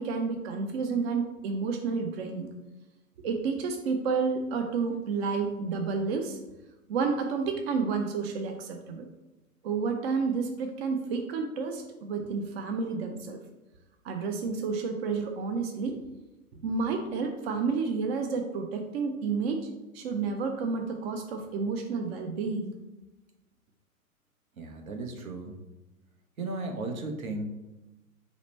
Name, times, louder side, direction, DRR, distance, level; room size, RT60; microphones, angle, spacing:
voice 1, 0.0-2.5 3.2-6.4 6.9-9.1 9.6-13.4 14.0-16.0 16.6-19.7 19.9-22.7, right 4 dB, 45° right, 4 dB, 0.6 m, -30 dB
voice 2, 24.6-25.5 26.4-27.5, right 2 dB, 75° right, 5 dB, 0.9 m, -35 dB
4.9 x 2.1 x 4.1 m, 1.0 s
hypercardioid pair, 120°, 43 cm